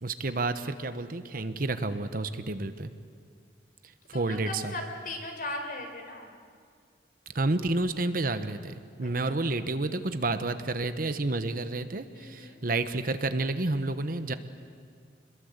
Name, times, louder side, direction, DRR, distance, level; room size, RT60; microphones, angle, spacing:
voice 1, 0.0-2.9 4.1-4.7 7.3-14.3, right 2 dB, 50° right, 10 dB, 1.1 m, -30 dB
voice 2, 4.1-6.3 9.0-9.4 12.1-12.6, left 2 dB, 50° left, 3 dB, 4.2 m, -38 dB
27.0 x 21.5 x 8.1 m, 2.1 s
head